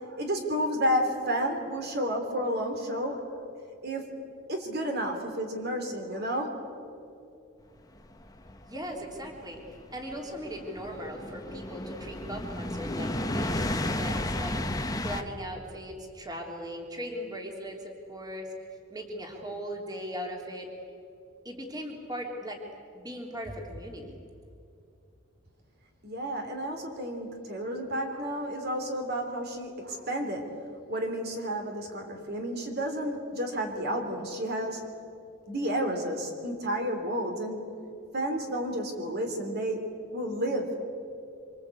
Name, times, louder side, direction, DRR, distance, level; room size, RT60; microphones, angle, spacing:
voice 1, 0.0-3.5 3.8-4.1 4.5-6.6 26.0-30.5 30.9-34.9 35.5-37.7 38.1-40.9, equal, 50° right, 4 dB, 3.3 m, -31 dB
sound 1, 8.2-15.2, left 1 dB, 15° left, 1.3 m, -33 dB
voice 2, 8.7-18.5 18.9-20.7 21.5-22.6 22.9-24.2, equal, 20° right, 1 dB, 3.5 m, -39 dB
26.0 x 25.5 x 8.5 m, 2.6 s
head